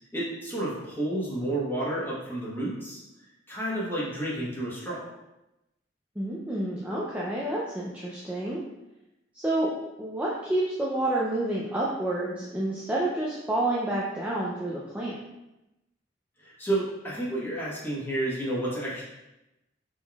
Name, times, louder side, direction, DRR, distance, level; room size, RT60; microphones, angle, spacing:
voice 1, 0.1-3.0 3.5-5.0 16.4-19.0, right 1 dB, 10° left, -7 dB, 1.2 m, -30 dB
voice 2, 6.2-8.6 9.3-9.7 10.0-15.2, right 1 dB, 10° right, -6 dB, 0.4 m, -29 dB
4.2 x 3.8 x 2.3 m, 0.95 s
head